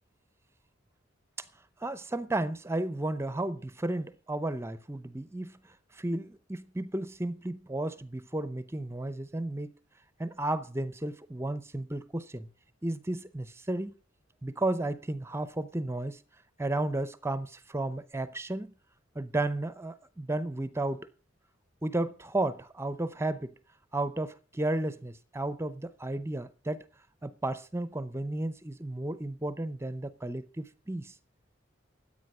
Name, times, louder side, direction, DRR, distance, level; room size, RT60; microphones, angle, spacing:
voice 1, 1.8-5.6 5.9-9.7 10.2-12.5 12.8-13.9 14.4-16.2 16.6-18.7 19.2-21.1 21.8-23.5 23.9-26.9 27.2-31.1, right 2 dB, 15° right, 0.7 m, -33 dB
14.0 x 8.6 x 6.1 m
head